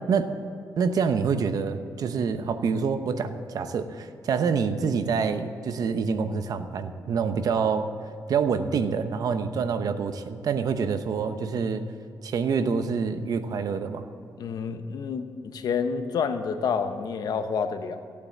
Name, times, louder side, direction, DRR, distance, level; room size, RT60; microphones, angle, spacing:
voice 1, 0.8-7.9 8.3-11.8 12.2-14.1, right 5 dB, 65° right, 9 dB, 0.9 m, -26 dB
voice 2, 14.4-18.0, left 6 dB, 70° left, 8 dB, 1.0 m, -29 dB
15.5 x 8.5 x 7.3 m, 2.6 s
cardioid pair, 120°, 7 cm